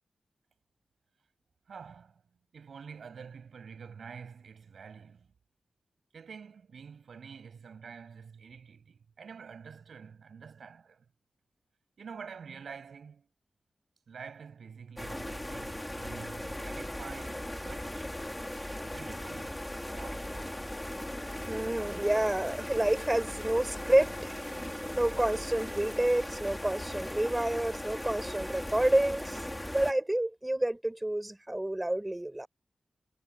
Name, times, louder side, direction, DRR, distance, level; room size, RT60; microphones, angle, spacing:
voice 1, 1.7-2.2 2.5-5.3 6.1-11.1 12.0-13.3 14.1-18.1 18.8-20.6, right 6 dB, 80° right, 7.9 m, -48 dB
sound 1, 15.0-29.9, left 1 dB, 15° left, 4.7 m, -38 dB
voice 2, 21.5-24.3 25.0-32.5, right 1 dB, 15° right, 6.0 m, -29 dB
cardioid pair, 50°, 0 cm